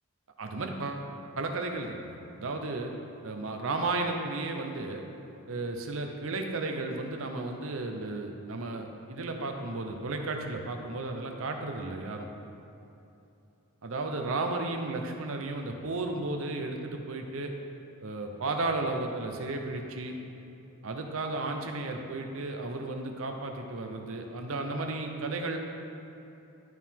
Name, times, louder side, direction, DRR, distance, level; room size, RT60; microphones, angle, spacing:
voice 1, 0.4-1.1 1.4-2.9 3.2-5.0 5.5-12.3 13.8-17.5 18.0-20.1 20.8-25.6, right 2 dB, 65° right, 3 dB, 0.7 m, -34 dB
12.0 x 4.6 x 3.6 m, 2.8 s
head